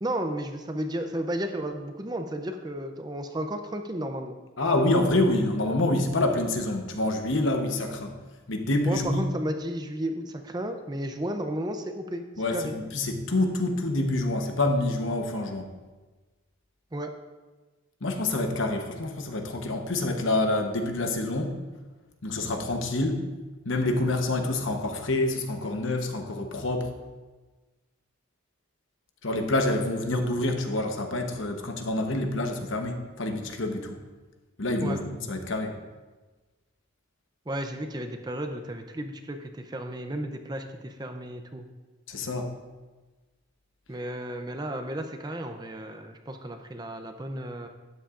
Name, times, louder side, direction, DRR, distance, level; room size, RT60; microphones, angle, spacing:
voice 1, 0.0-4.4 8.8-12.3 12.5-12.8 16.9-17.1 34.8-35.0 37.5-41.7 43.9-47.7, right 1 dB, 20° right, 6 dB, 0.5 m, -33 dB
voice 2, 4.6-8.2 8.5-9.3 12.4-15.7 18.0-21.6 22.2-23.2 23.6-26.9 29.2-34.0 34.6-35.8 42.1-42.5, left 2 dB, 70° left, 4 dB, 1.0 m, -27 dB
12.5 x 9.7 x 2.5 m, 1.2 s
head